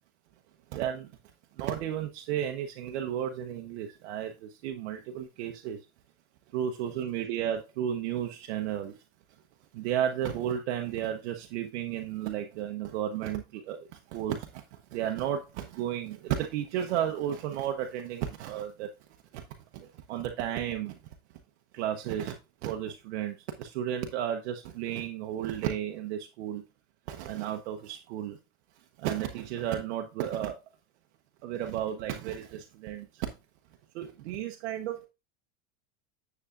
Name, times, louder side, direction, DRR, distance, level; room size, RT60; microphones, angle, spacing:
voice 1, 0.7-1.1 1.6-5.8 6.5-9.0 9.7-18.9 19.3-19.4 19.7-21.0 21.7-26.6 27.1-28.4 29.0-30.6 31.4-33.3 33.9-35.1, right 10 dB, 80° right, 1.0 m, -33 dB
9.6 x 7.0 x 2.5 m
supercardioid pair, 105°, 35 cm